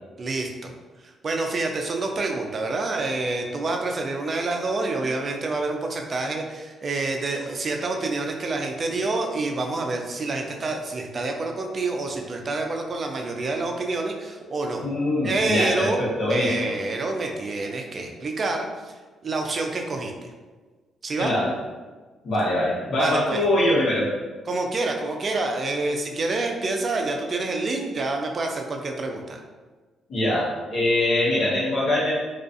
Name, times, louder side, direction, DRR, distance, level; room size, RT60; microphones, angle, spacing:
voice 1, 0.2-0.7 1.0-14.9 15.2-16.0 16.3-18.9 19.2-20.1 21.0-21.3 23.0-23.4 24.5-29.4, right 3 dB, 40° right, 2 dB, 0.4 m, -27 dB
voice 2, 14.8-16.7 21.2-21.5 22.2-24.1 30.1-32.1, left 1 dB, 60° left, -7 dB, 0.9 m, -23 dB
2.4 x 2.3 x 2.5 m, 1.3 s
cardioid pair, 90°, 0 cm